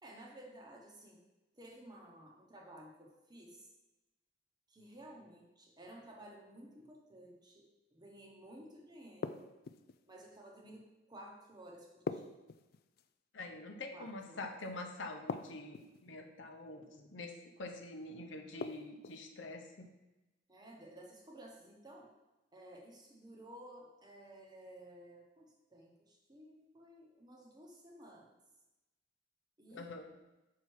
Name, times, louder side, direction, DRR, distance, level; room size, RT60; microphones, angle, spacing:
voice 1, 0.0-1.2 1.5-3.7 4.7-9.5 10.1-12.2 13.9-14.5 20.5-22.1 22.5-28.4 29.6-29.9, right 1 dB, 20° right, -1 dB, 1.0 m, -54 dB
sound 1, 9.2-10.0 12.1-13.1 15.3-16.0 18.6-19.2, left 5 dB, 50° left, 0.3 m, -42 dB
voice 2, 13.3-19.9 29.7-30.1, left 2 dB, 75° left, 3 dB, 0.8 m, -46 dB
5.7 x 4.7 x 4.7 m, 1.0 s
head